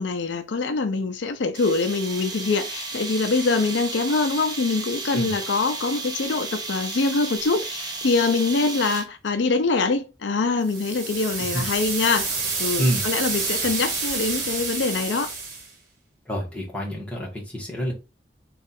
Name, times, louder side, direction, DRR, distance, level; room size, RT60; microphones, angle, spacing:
voice 1, 0.0-12.3 12.6-15.3, left 3 dB, 80° left, 0.5 m, -24 dB
sound 1, 1.5-9.3, right 3 dB, 20° right, 0.8 m, -33 dB
sound 2, 10.6-15.7, right 4 dB, 45° right, 1.3 m, -28 dB
voice 2, 12.8-13.1 13.6-13.7 16.2-17.9, equal, 5° left, 1.4 m, -27 dB
3.6 x 2.4 x 4.1 m
head